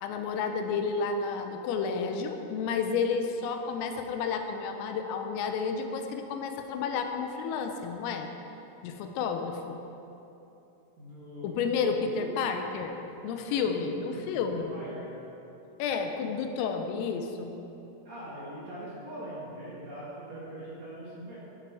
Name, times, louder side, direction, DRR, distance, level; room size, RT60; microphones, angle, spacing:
voice 1, 0.0-8.3 8.8-9.8 11.4-13.0 13.2-14.7 15.8-17.6, left 5 dB, 90° left, 5 dB, 3.5 m, -31 dB
voice 2, 11.0-12.6 13.4-15.1 18.0-21.4, right 1 dB, 40° right, -8 dB, 3.1 m, -42 dB
14.5 x 10.5 x 4.8 m, 3.0 s
omnidirectional pair, 6.0 m